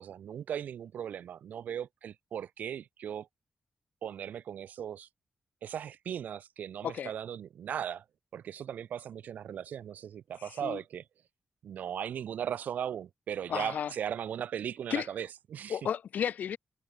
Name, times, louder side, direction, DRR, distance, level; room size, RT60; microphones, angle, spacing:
voice 1, 0.0-3.3 4.0-5.1 5.6-8.0 8.3-11.0 11.6-15.8, right 9 dB, 85° right, 0.7 m, -38 dB
voice 2, 10.4-10.8 13.5-13.9 14.9-15.1 15.7-16.6, left 8 dB, 80° left, 1.0 m, -33 dB
cardioid pair, 50°, 3 cm